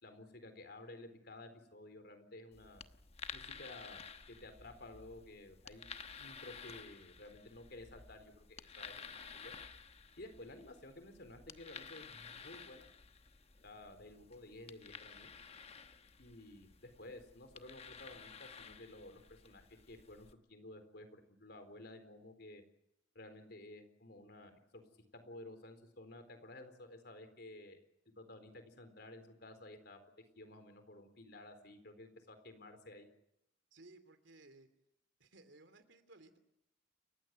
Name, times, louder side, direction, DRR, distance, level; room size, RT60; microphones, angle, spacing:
voice 1, 0.0-2.8 3.3-4.0 4.3-5.9 6.2-9.5 10.2-12.9 13.6-15.3 16.2-22.6 23.1-24.8 25.1-27.8 28.2-30.0 30.4-33.1, left 2 dB, 60° left, 8 dB, 4.1 m, -53 dB
sound 1, 2.5-20.3, left 6 dB, 35° left, 1.1 m, -53 dB
voice 2, 33.7-34.7 35.2-36.4, right 2 dB, 75° right, 10 dB, 2.9 m, -60 dB
29.0 x 15.5 x 9.4 m, 0.81 s
head